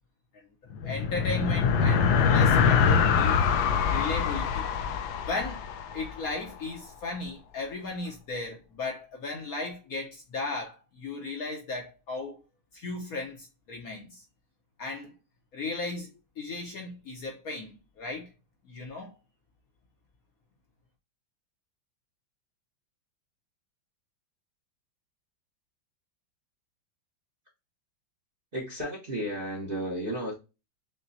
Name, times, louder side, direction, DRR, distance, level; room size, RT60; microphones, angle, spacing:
sound 1, 0.7-6.4, left 6 dB, 80° left, 1.3 m, -24 dB
voice 1, 0.8-3.4 3.9-4.7 5.2-5.6 5.9-12.4 12.7-14.2 14.8-15.1 15.5-16.1 16.4-18.3 18.6-19.1, left 3 dB, 60° left, 1.0 m, -36 dB
voice 2, 28.5-30.3, right 1 dB, 40° right, 0.8 m, -33 dB
5.8 x 2.2 x 2.6 m
omnidirectional pair, 2.1 m